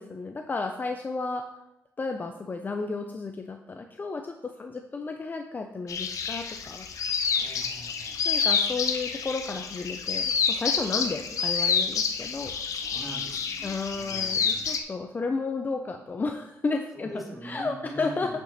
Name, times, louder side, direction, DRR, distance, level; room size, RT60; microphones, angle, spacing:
voice 1, 0.0-1.5 2.0-6.9 8.2-12.5 13.6-17.1 17.4-18.4, left 3 dB, 30° left, 5 dB, 0.6 m, -32 dB
sound 1, 5.9-14.8, left 6 dB, 65° left, 0.9 m, -28 dB
voice 2, 7.3-8.2 12.5-14.7 16.9-18.4, right 1 dB, ahead, -4 dB, 3.0 m, -42 dB
8.6 x 6.0 x 4.2 m, 0.89 s
cardioid pair, 85°, 6 cm